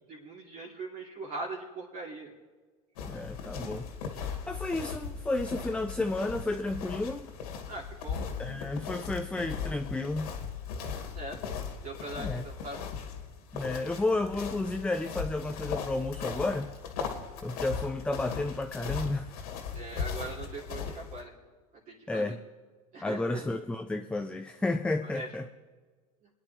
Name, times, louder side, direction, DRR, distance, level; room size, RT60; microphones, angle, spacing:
voice 1, 0.1-2.3 7.7-8.3 11.1-11.4 11.8-12.8 19.7-21.3 21.9-22.3 22.9-23.5 25.1-25.3, right 2 dB, 45° right, -5 dB, 3.0 m, -41 dB
sound 1, 3.0-21.2, left 6 dB, 80° left, 2.3 m, -38 dB
voice 2, 3.1-7.3 8.4-10.3 12.2-12.4 13.5-16.7 17.4-19.3 22.1-22.4 23.0-25.5, left 2 dB, 5° left, 6 dB, 0.6 m, -32 dB
26.5 x 10.0 x 3.3 m, 1.4 s
hypercardioid pair, 100°, 19 cm